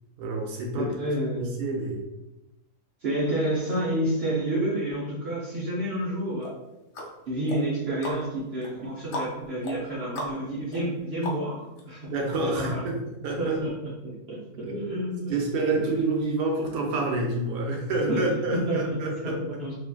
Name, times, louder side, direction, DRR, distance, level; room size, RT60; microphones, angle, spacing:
voice 1, 0.2-0.9 1.3-2.0 12.1-13.0 13.2-13.6 14.6-19.6, right 2 dB, 85° right, 0 dB, 1.3 m, -28 dB
voice 2, 0.8-1.6 3.0-6.5 7.3-12.2 12.4-12.9 13.4-13.7 14.0-15.4 15.7-15.9 18.1-18.2 18.5-19.7, right 1 dB, 55° right, -7 dB, 0.7 m, -29 dB
sound 1, 6.4-11.8 12.3-12.4, left 1 dB, 80° left, 1.3 m, -38 dB
3.3 x 2.5 x 2.2 m, 0.96 s
omnidirectional pair, 1.8 m